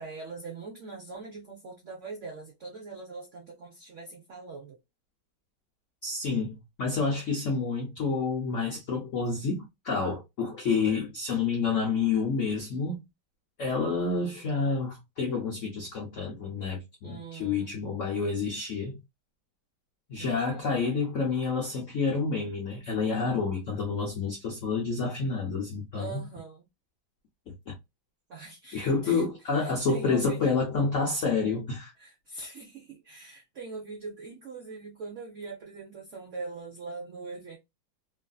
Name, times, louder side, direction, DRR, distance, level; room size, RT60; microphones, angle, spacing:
voice 1, 0.0-4.8 17.0-17.7 20.2-20.6 25.9-26.6 28.3-29.3 29.6-30.5 32.0-37.6, right 4 dB, 75° right, 0.7 m, -42 dB
voice 2, 6.0-13.0 13.6-19.0 20.1-26.3 27.5-27.7 28.7-31.9, left 4 dB, 75° left, 0.7 m, -29 dB
3.2 x 2.5 x 2.2 m
omnidirectional pair, 2.2 m